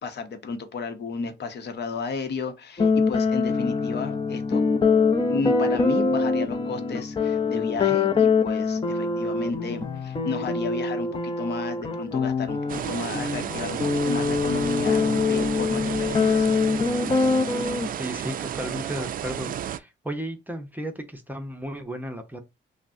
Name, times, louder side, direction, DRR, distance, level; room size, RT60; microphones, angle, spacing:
voice 1, 0.0-4.6 5.3-16.5, left 4 dB, 60° left, 0.9 m, -33 dB
sound 1, 2.8-17.9, left 4 dB, 25° left, 0.6 m, -24 dB
sound 2, 12.7-19.8, right 9 dB, 45° right, 0.4 m, -32 dB
voice 2, 18.0-22.4, right 1 dB, 10° right, 0.7 m, -34 dB
5.7 x 2.1 x 2.6 m
cardioid pair, 90°, 20 cm